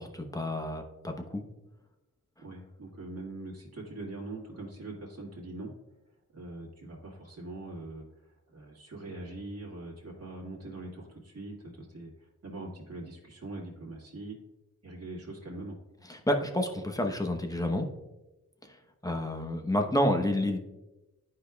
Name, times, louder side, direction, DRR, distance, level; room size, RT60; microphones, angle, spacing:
voice 1, 0.0-1.4 16.1-17.9 18.6-18.8 19.0-20.6, left 1 dB, 10° left, 4 dB, 0.9 m, -29 dB
voice 2, 2.4-5.7 6.3-14.4 14.8-15.8, right 2 dB, 45° right, -3 dB, 1.9 m, -42 dB
11.5 x 4.9 x 2.3 m, 1.0 s
wide cardioid pair, 75°, 34 cm